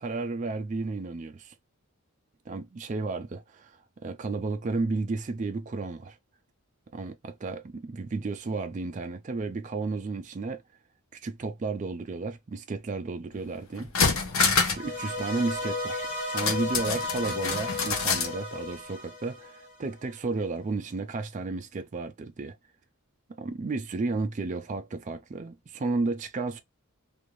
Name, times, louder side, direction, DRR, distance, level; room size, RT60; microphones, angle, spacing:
voice 1, 0.0-1.5 2.5-6.2 6.9-10.6 11.1-13.9 14.7-22.6 23.4-26.6, right 3 dB, 35° right, 0.3 m, -33 dB
sound 1, 13.3-13.4 13.8-14.9 15.2-15.3 16.4-18.3 18.7-18.8, left 5 dB, 70° left, 0.9 m, -26 dB
sound 2, 14.7-20.0, left 2 dB, 45° left, 1.3 m, -34 dB
2.6 x 2.4 x 3.0 m
head